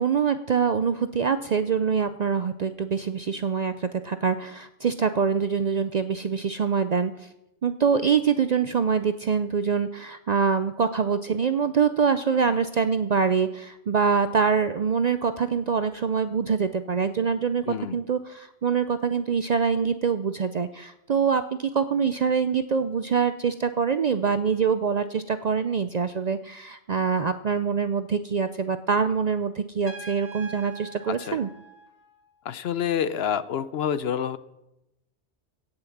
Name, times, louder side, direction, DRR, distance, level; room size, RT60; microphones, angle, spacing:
voice 1, 0.0-7.1 7.6-17.6 17.9-31.5, right 6 dB, 55° right, 11 dB, 0.5 m, -24 dB
voice 2, 17.7-18.0 31.1-31.4 32.4-34.4, left 8 dB, 65° left, 15 dB, 0.8 m, -28 dB
Trumpet, 29.8-32.5, right 3 dB, 35° right, 1.7 m, -43 dB
17.0 x 6.8 x 7.2 m, 0.91 s
omnidirectional pair, 1.2 m